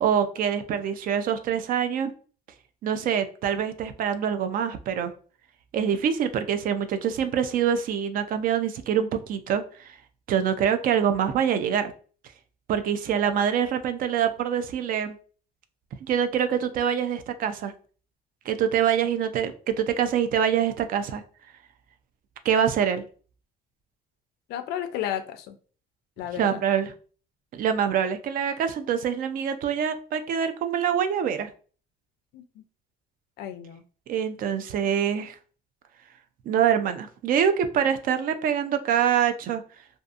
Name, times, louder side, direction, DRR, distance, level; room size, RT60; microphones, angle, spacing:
voice 1, 0.0-2.1 2.8-5.1 5.7-9.9 10.3-11.9 12.7-15.2 16.0-17.7 18.5-21.2 22.4-23.0 26.4-26.9 27.5-31.5 34.1-35.4 36.5-39.6, right 8 dB, 55° right, 9 dB, 0.4 m, -25 dB
voice 2, 24.5-25.6 26.2-26.6 32.3-32.6 33.4-33.8, left 10 dB, 80° left, 10 dB, 0.4 m, -33 dB
2.6 x 2.5 x 2.3 m, 0.41 s
cardioid pair, 110°, 17 cm